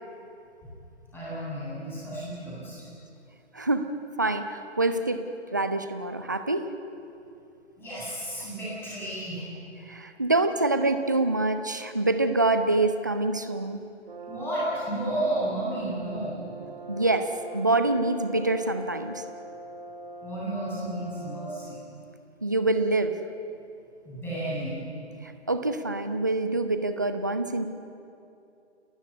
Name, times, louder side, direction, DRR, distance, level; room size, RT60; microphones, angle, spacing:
voice 1, 1.1-2.9 7.8-9.5 14.2-16.9 20.2-21.8 24.0-24.8, right 1 dB, 5° left, -8 dB, 7.7 m, -32 dB
voice 2, 3.5-3.9 4.2-5.2 5.5-6.7 9.9-13.8 16.9-19.2 22.4-23.2 25.2-27.7, right 2 dB, 15° right, 9 dB, 0.5 m, -26 dB
Brass instrument, 14.1-21.9, right 1 dB, 50° right, 2.5 m, -42 dB
30.0 x 14.0 x 9.6 m, 2.6 s
figure-of-eight pair, 140°, 36 cm